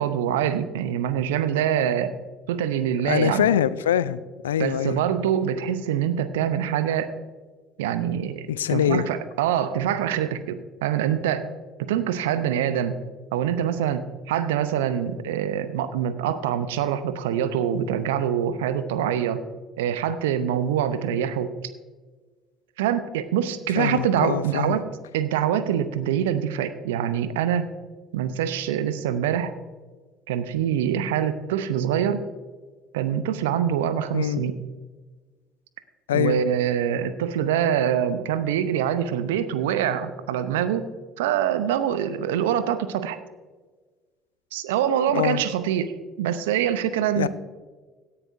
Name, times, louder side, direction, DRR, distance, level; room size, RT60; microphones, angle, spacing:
voice 1, 0.0-2.1 2.5-3.5 4.6-7.1 7.8-11.5 11.8-13.0 13.3-14.0 14.3-19.4 19.8-21.5 22.8-24.8 25.1-27.7 28.1-29.5 30.3-32.2 32.9-34.6 36.1-40.9 41.2-43.2 44.5-47.3, right 9 dB, 75° right, 13 dB, 0.7 m, -25 dB
voice 2, 3.0-5.0 8.5-9.0 23.8-24.8 34.1-34.4 36.1-36.4 45.1-45.4 47.2-47.3, left 10 dB, 80° left, 17 dB, 0.4 m, -24 dB
17.0 x 9.9 x 2.6 m, 1.4 s
figure-of-eight pair, 55°, 0 cm